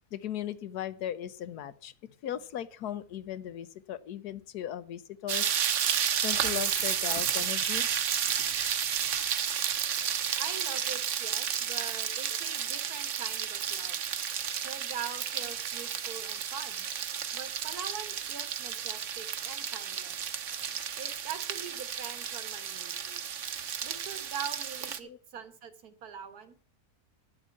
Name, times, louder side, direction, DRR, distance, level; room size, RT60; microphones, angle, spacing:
voice 1, 0.1-1.9 2.2-5.5 6.2-7.9 23.1-23.2 25.0-25.2, left 11 dB, 85° left, 14 dB, 1.3 m, -37 dB
sound 1, 5.3-25.0, right 8 dB, 60° right, 1.1 m, -32 dB
voice 2, 10.4-14.0 14.6-16.9 17.3-20.2 21.0-22.9 23.8-26.6, right 7 dB, 80° right, 9 dB, 1.8 m, -43 dB
10.0 x 7.3 x 7.1 m, 0.43 s
omnidirectional pair, 1.6 m